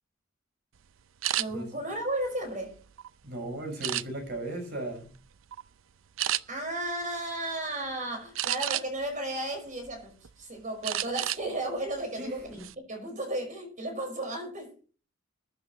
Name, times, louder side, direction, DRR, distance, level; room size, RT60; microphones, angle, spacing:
sound 1, 1.2-1.5 2.1-3.1 3.8-4.4 4.9-5.2 5.5-5.7 6.2-6.4 8.4-9.1 9.6-10.3 10.8-11.4 11.8-12.0 12.4-12.7, right 13 dB, 85° right, 0.5 m, -31 dB
voice 1, 1.4-2.8 6.5-12.6 12.9-14.7, right 1 dB, 40° right, 5.3 m, -34 dB
voice 2, 3.2-5.1 12.2-12.6, right 1 dB, 55° right, 6.0 m, -36 dB
21.0 x 11.0 x 3.1 m
head